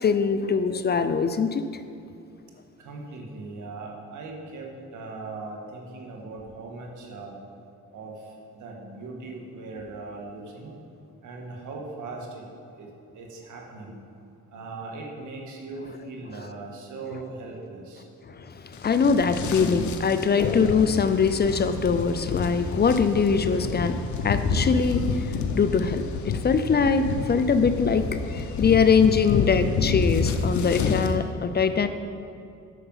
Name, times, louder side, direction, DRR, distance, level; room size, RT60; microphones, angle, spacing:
voice 1, 0.0-1.6 18.8-31.9, left 5 dB, 35° left, 10 dB, 0.5 m, -22 dB
voice 2, 2.8-7.3 7.9-8.1 8.5-10.7 11.2-12.4 12.8-12.9 13.1-13.9 14.5-18.0, right 3 dB, 75° right, 0 dB, 1.9 m, -39 dB
sound 1, 18.8-31.1, left 4 dB, 70° left, 0.9 m, -29 dB
10.0 x 6.8 x 5.6 m, 2.6 s
cardioid pair, 90°, 30 cm